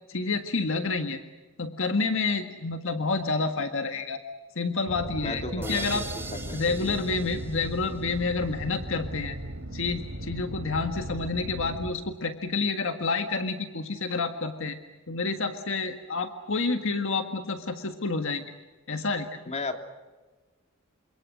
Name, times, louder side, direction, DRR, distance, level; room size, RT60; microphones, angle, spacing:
voice 1, 0.1-1.2 1.6-4.2 4.6-6.1 6.5-9.4 9.7-14.8 15.1-18.5 18.9-19.3, left 3 dB, 65° left, 6 dB, 1.7 m, -29 dB
sound 1, 4.9-11.9, right 1 dB, 85° right, 3.2 m, -37 dB
voice 2, 5.2-6.0 6.3-7.0 19.5-19.8, left 2 dB, 35° left, 5 dB, 2.9 m, -35 dB
sound 2, 5.6-8.5, right 3 dB, 10° right, 2.9 m, -41 dB
29.0 x 26.5 x 6.3 m, 1.3 s
head